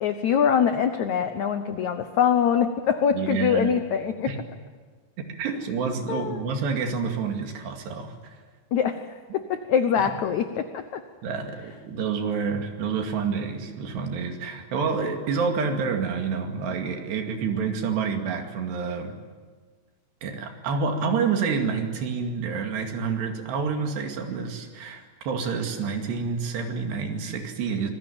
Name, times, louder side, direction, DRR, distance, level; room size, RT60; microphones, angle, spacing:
voice 1, 0.0-4.3 6.1-6.4 8.7-9.1 9.3-11.0, left 8 dB, 85° left, 8 dB, 1.6 m, -24 dB
voice 2, 3.1-3.7 4.3-4.4 5.2-8.4 10.0-10.1 11.2-19.1 20.2-27.9, right 5 dB, 75° right, 4 dB, 4.5 m, -28 dB
26.0 x 21.5 x 8.8 m, 1.5 s
omnidirectional pair, 4.9 m